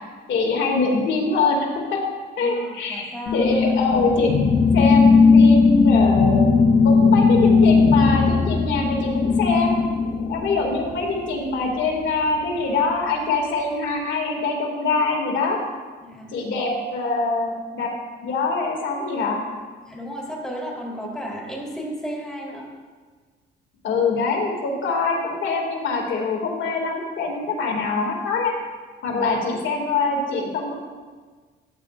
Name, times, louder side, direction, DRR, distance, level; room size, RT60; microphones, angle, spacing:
voice 1, 0.3-2.0 2.4-4.3 4.7-6.5 6.8-9.8 10.3-15.6 16.3-17.9 18.2-19.4 23.8-28.5 29.0-30.7, left 3 dB, 70° left, 0 dB, 2.4 m, -24 dB
voice 2, 2.4-3.5 16.0-16.4 19.9-22.7 29.1-29.2, equal, 5° left, -3 dB, 3.5 m, -33 dB
sound 1, 3.3-11.0, left 4 dB, 55° left, 1.0 m, -17 dB
14.0 x 10.0 x 2.5 m, 1.4 s
cardioid pair, 90°, 20 cm